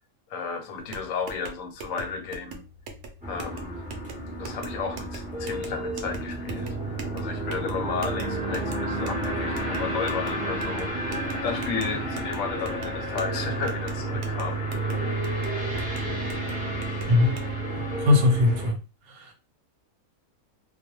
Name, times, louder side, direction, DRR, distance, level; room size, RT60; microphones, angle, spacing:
voice 1, 0.3-2.6 3.3-3.8 4.4-10.9 11.4-14.6, left 5 dB, 75° left, 0.9 m, -33 dB
sound 1, 0.8-17.5, right 2 dB, 65° right, 0.8 m, -42 dB
sound 2, 3.2-18.7, right 2 dB, 10° right, 0.4 m, -31 dB
voice 2, 17.1-17.4 18.0-18.8 19.1-19.3, left 3 dB, 90° right, 1.1 m, -20 dB
2.3 x 2.2 x 2.9 m
omnidirectional pair, 1.5 m